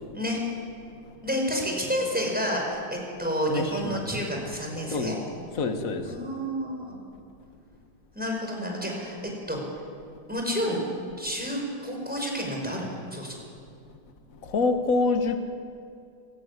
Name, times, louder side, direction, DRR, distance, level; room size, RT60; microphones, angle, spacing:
voice 1, 1.2-5.2 6.0-6.8 8.1-9.2 9.5-9.6 10.3-10.8 11.2-13.4, equal, 5° right, 0 dB, 5.7 m, -29 dB
voice 2, 3.5-4.2 4.9-5.2 5.6-6.1 14.4-15.4, left 3 dB, 45° left, 6 dB, 1.9 m, -26 dB
26.0 x 14.0 x 9.8 m, 2.4 s
omnidirectional pair, 2.2 m